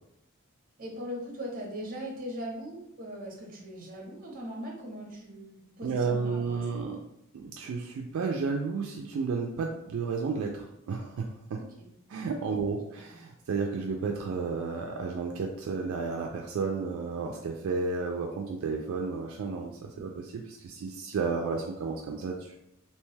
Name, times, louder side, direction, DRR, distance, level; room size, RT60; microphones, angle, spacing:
voice 1, 0.8-6.8 11.6-11.9 12.6-13.0, equal, 40° right, 0 dB, 0.7 m, -40 dB
voice 2, 5.8-7.0 7.3-11.6 12.1-22.6, right 4 dB, 70° right, 1 dB, 0.3 m, -32 dB
2.9 x 2.2 x 3.2 m, 0.80 s
head